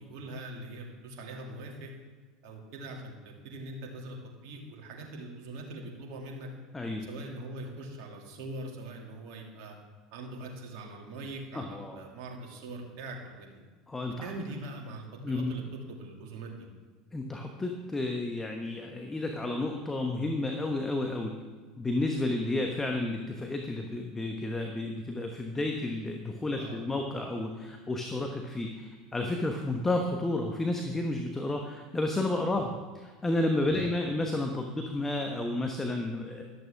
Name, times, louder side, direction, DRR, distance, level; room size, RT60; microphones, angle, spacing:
voice 1, 0.0-1.9 2.4-6.5 7.1-9.8 10.1-13.6 14.1-15.6 15.9-16.6 26.6-26.8 32.6-32.7 33.7-33.9, right 2 dB, 55° right, 0 dB, 2.4 m, -42 dB
voice 2, 6.7-7.1 11.5-12.0 13.9-14.3 15.2-15.6 17.1-21.4 21.8-36.4, left 2 dB, 15° left, 3 dB, 1.1 m, -31 dB
14.0 x 12.0 x 3.6 m, 1.4 s
figure-of-eight pair, 75°, 2 cm